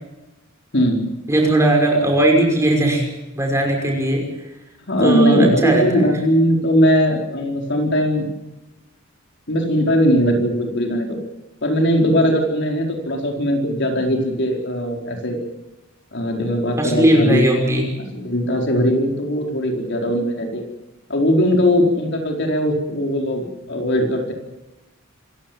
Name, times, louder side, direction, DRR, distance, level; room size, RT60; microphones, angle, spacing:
voice 1, 0.7-1.0 4.9-8.3 9.5-11.2 11.6-15.4 16.1-17.4 18.0-20.6 21.1-24.3, equal, 55° left, 2 dB, 4.5 m, -19 dB
voice 2, 1.3-3.0 3.4-4.2 5.0-5.8 16.8-17.9, right 1 dB, 15° right, 1 dB, 5.9 m, -17 dB
26.5 x 17.0 x 7.6 m, 1.0 s
head